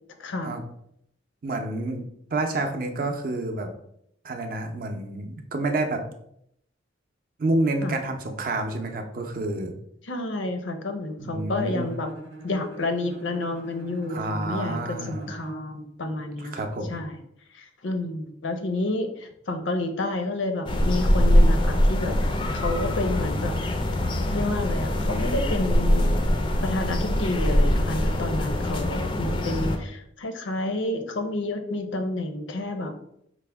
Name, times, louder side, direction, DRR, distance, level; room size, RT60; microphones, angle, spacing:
voice 1, 0.2-0.5 7.8-8.0 10.0-12.1 12.4-16.6 16.9-17.2 17.5-22.2 22.5-23.5 24.3-26.1 26.6-33.0, left 2 dB, 90° left, 6 dB, 0.6 m, -30 dB
voice 2, 1.4-3.7 4.2-6.0 7.4-9.7 11.2-12.0 14.1-15.3 16.4-17.0, right 2 dB, 50° right, 5 dB, 0.5 m, -29 dB
Bowed string instrument, 11.5-15.7, right 2 dB, 90° right, 0.8 m, -43 dB
sound 1, 20.7-29.8, equal, 25° left, 0.3 m, -23 dB
4.7 x 2.1 x 3.3 m, 0.73 s
head